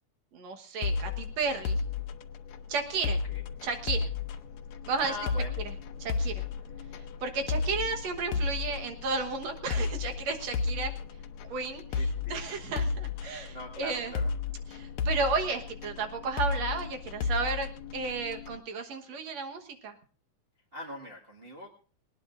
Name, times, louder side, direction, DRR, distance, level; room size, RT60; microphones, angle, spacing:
voice 1, 0.3-1.8 2.7-3.2 3.6-4.1 4.9-5.1 6.0-6.4 7.2-10.9 11.5-14.1 14.7-20.0, right 4 dB, 65° right, 5 dB, 2.4 m, -33 dB
sound 1, 0.8-18.6, left 4 dB, 70° left, 2.0 m, -33 dB
voice 2, 5.0-5.6 12.0-12.4 13.5-14.3 20.7-21.7, left 1 dB, 25° right, -2 dB, 1.6 m, -41 dB
19.5 x 19.0 x 2.6 m, 0.41 s
omnidirectional pair, 3.5 m